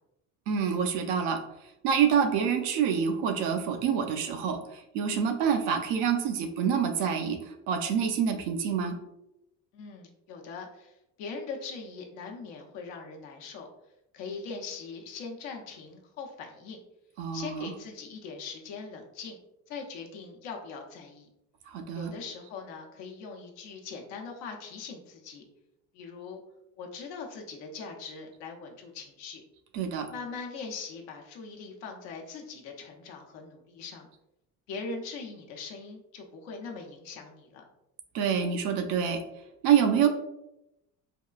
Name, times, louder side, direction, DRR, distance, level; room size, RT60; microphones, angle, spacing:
voice 1, 0.5-1.4 1.8-8.9 17.2-17.7 21.7-22.1 29.7-30.1 38.1-39.2 39.6-40.1, right 7 dB, 75° right, 5 dB, 0.6 m, -27 dB
voice 2, 9.7-13.7 14.1-16.8 17.3-19.4 19.7-21.3 21.9-25.4 25.9-26.4 26.8-29.4 30.1-34.1 34.7-37.6, left 4 dB, 70° left, 2 dB, 0.7 m, -41 dB
3.6 x 2.3 x 2.3 m, 0.88 s
hypercardioid pair, 60°, 44 cm